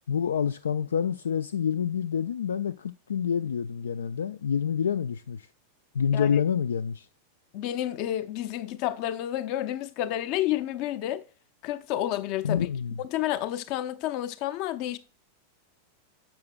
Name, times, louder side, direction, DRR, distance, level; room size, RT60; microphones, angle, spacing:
voice 1, 0.1-5.5 5.9-7.1 12.4-12.9, left 7 dB, 70° left, 0.3 m, -27 dB
voice 2, 7.5-11.2 11.6-12.7 13.0-15.0, left 13 dB, 45° left, 0.7 m, -30 dB
10.5 x 7.3 x 2.2 m
figure-of-eight pair, 90°, 0 cm